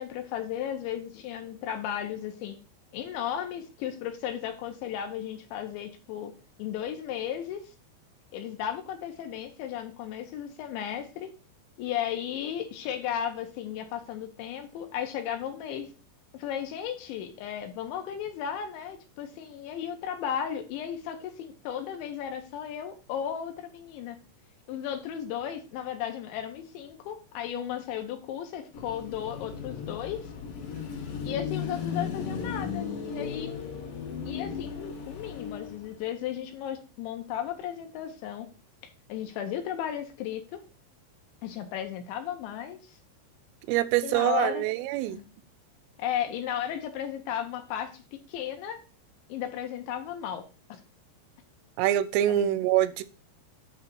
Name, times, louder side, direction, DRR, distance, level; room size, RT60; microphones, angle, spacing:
voice 1, 0.0-2.6 2.9-6.3 6.6-7.6 8.3-11.3 11.8-15.9 16.3-24.2 24.7-30.3 31.2-33.5 34.2-38.5 39.1-40.6 41.4-43.0 44.0-44.6 45.1-45.2 46.0-48.0 48.3-48.8 49.3-50.4 50.7-50.8 52.3-52.5, left 9 dB, 75° left, 3.1 m, -35 dB
Car passing by / Traffic noise roadway noise / Engine, 28.7-36.1, left 6 dB, 55° left, 3.3 m, -36 dB
voice 2, 43.7-45.2 51.8-53.0, right 13 dB, 85° right, 3.1 m, -25 dB
9.8 x 3.4 x 6.8 m
omnidirectional pair, 5.8 m